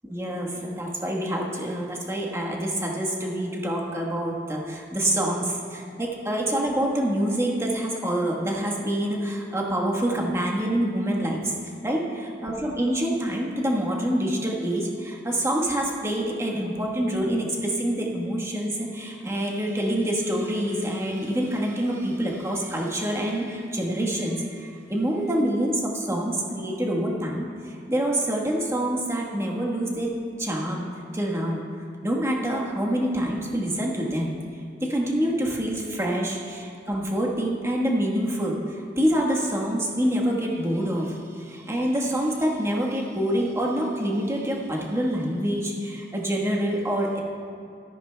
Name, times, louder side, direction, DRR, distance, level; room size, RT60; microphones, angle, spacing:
voice 1, 0.0-11.5 11.8-30.9 31.1-31.6 32.0-34.3 34.8-38.6 39.0-47.2, right 1 dB, 15° right, -2 dB, 1.3 m, -26 dB
14.0 x 13.5 x 2.2 m, 2.4 s
head